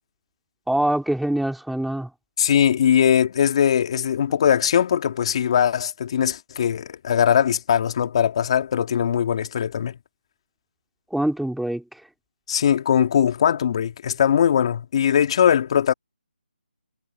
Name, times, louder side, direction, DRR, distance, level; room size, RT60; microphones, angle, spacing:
voice 1, 0.7-2.1 11.1-11.8, right 1 dB, ahead, 4.7 m, -24 dB
voice 2, 2.4-9.9 12.5-15.9, left 9 dB, 35° left, 2.8 m, -20 dB
figure-of-eight pair, 160°, 6 cm